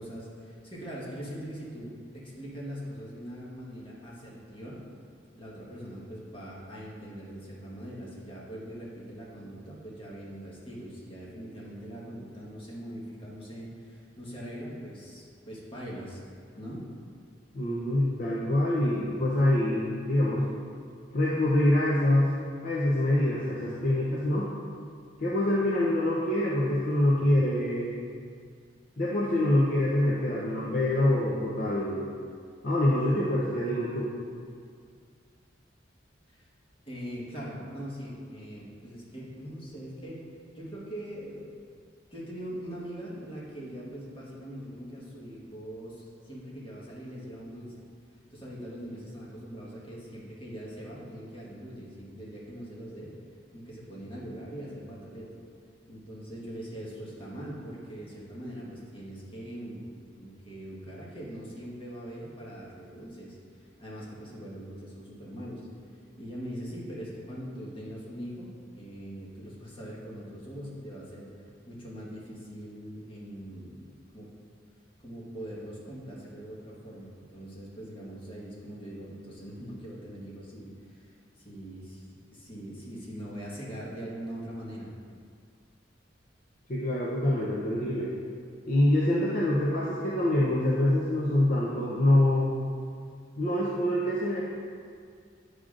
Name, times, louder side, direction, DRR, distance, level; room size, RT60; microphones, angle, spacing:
voice 1, 0.0-4.8 5.4-16.2 16.6-16.8 36.3-36.5 36.9-40.2 40.5-41.5 42.1-47.8 48.3-53.2 53.5-55.3 55.9-65.7 66.2-73.8 74.1-74.3 75.0-84.9, equal, 30° left, -6 dB, 1.4 m, -42 dB
voice 2, 17.5-20.5 21.1-24.5 25.2-27.9 29.0-32.0 32.6-34.1 86.7-88.1 88.7-92.5 93.4-94.4, left 1 dB, 45° left, -6 dB, 0.7 m, -25 dB
9.0 x 4.9 x 2.5 m, 2.2 s
head